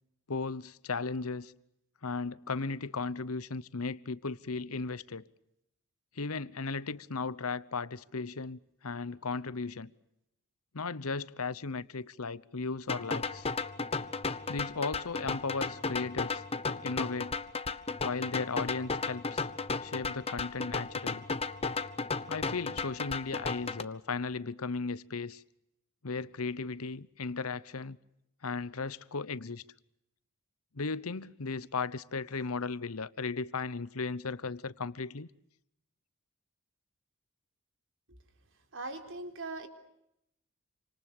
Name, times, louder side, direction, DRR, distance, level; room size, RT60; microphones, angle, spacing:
voice 1, 0.3-1.5 2.0-5.3 6.1-9.9 10.7-13.5 14.5-17.3 18.0-19.5 19.8-21.2 22.3-25.4 26.0-28.0 28.4-29.6 30.7-35.3, left 4 dB, 90° left, 1.0 m, -36 dB
sound 1, 12.9-23.8, left 4 dB, 30° left, 1.2 m, -35 dB
voice 2, 38.7-39.7, right 2 dB, 65° right, 3.7 m, -40 dB
28.5 x 26.5 x 6.8 m
head